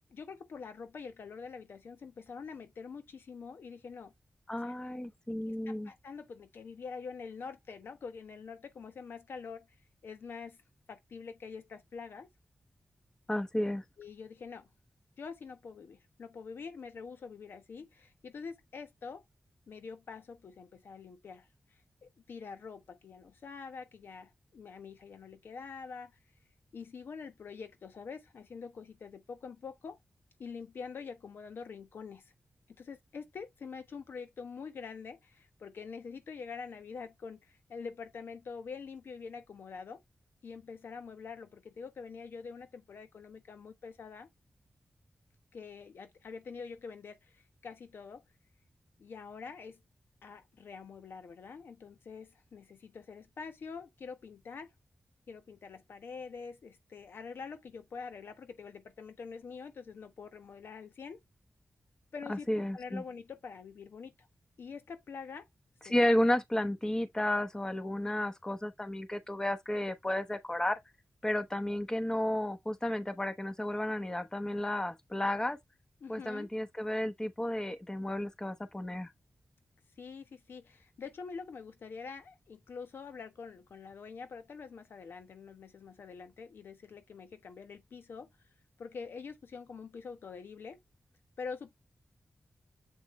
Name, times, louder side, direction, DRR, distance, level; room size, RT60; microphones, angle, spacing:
voice 1, 0.1-4.1 4.6-4.8 5.5-9.7 10.0-10.6 10.9-12.3 14.0-14.7 15.2-19.2 19.7-26.2 26.7-30.0 30.4-32.3 32.7-40.0 40.4-44.3 45.5-48.2 49.0-49.8 50.2-54.7 55.3-61.2 62.1-64.3 64.6-65.5 65.8-65.9 67.8-68.0 76.0-76.5 80.0-88.3 88.8-90.8 91.4-91.7, left 5 dB, 85° left, 1.1 m, -45 dB
voice 2, 4.5-5.9 13.3-13.8 62.3-63.0 65.9-70.8 71.2-75.6 76.1-79.1, left 1 dB, 20° left, 1.1 m, -32 dB
7.5 x 4.4 x 3.1 m
wide cardioid pair, 90°, 4 cm